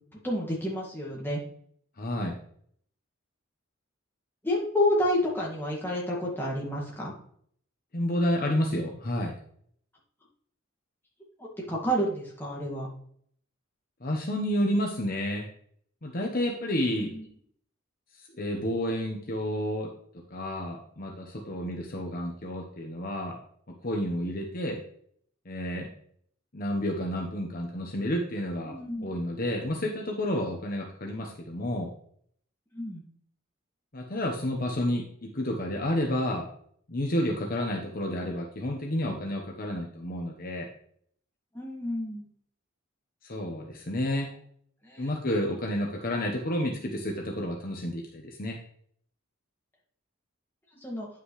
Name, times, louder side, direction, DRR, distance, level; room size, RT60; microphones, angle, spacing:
voice 1, 0.2-1.4 4.4-7.1 11.4-12.9 17.0-17.3 28.6-29.1 32.7-33.0 41.5-42.3 44.8-45.1 50.8-51.1, left 1 dB, 10° left, -4 dB, 2.1 m, -29 dB
voice 2, 2.0-2.4 7.9-9.3 14.0-15.4 16.0-17.1 18.4-19.9 20.3-23.4 23.8-24.8 25.4-25.9 26.5-31.9 33.9-36.5 36.9-40.7 43.2-44.3 45.0-48.6, left 1 dB, 45° left, 1 dB, 1.1 m, -30 dB
9.5 x 5.9 x 3.2 m, 0.62 s
head